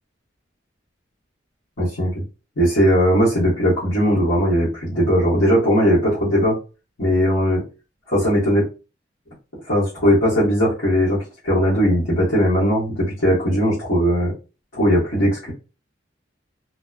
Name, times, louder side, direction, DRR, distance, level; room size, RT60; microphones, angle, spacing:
voice 1, 1.8-2.2 2.6-6.5 7.0-7.6 8.1-8.6 9.7-14.3 14.7-15.5, equal, 75° left, -9 dB, 1.2 m, -18 dB
2.8 x 2.1 x 2.3 m, 0.32 s
head